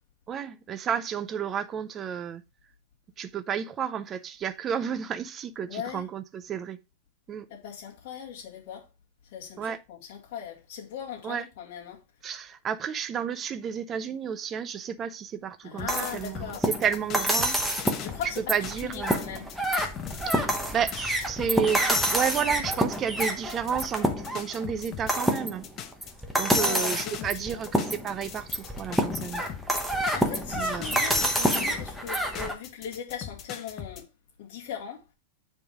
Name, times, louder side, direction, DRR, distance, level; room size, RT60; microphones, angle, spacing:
voice 1, 0.3-2.4 3.2-6.8 7.3-7.5 9.6-9.8 11.2-11.5 12.2-17.6 18.5-19.2 20.2-25.7 26.4-29.4 30.6-31.0, right 8 dB, 20° right, 0.5 m, -31 dB
voice 2, 5.7-6.1 7.5-8.9 9.3-12.0 15.6-16.7 18.0-19.5 26.5-27.6 30.1-34.1 34.4-35.0, left 8 dB, 45° left, 2.2 m, -39 dB
sound 1, 15.8-20.5 20.9-29.7 30.1-34.0, left 9 dB, 25° left, 0.7 m, -41 dB
sound 2, 15.9-32.5, equal, ahead, 0.9 m, -28 dB
9.3 x 3.6 x 4.9 m
supercardioid pair, 170°, 0 cm